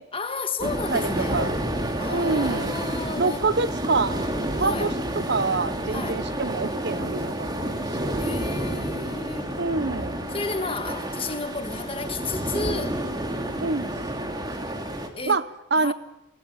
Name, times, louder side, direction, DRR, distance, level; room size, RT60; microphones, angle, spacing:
voice 1, 0.1-1.5 2.0-3.5 4.6-5.0 5.9-6.3 8.2-9.6 10.3-13.1 15.2-15.5 15.7-15.9, left 3 dB, 25° left, 1.6 m, -32 dB
sound 1, 0.6-15.1, right 1 dB, 20° right, 2.6 m, -29 dB
voice 2, 0.6-1.5 2.1-2.7 3.2-4.3 4.6-8.2 9.6-10.1 13.6-13.9 15.3-15.4 15.7-15.9, right 3 dB, 55° right, 0.9 m, -26 dB
29.0 x 19.5 x 9.0 m
head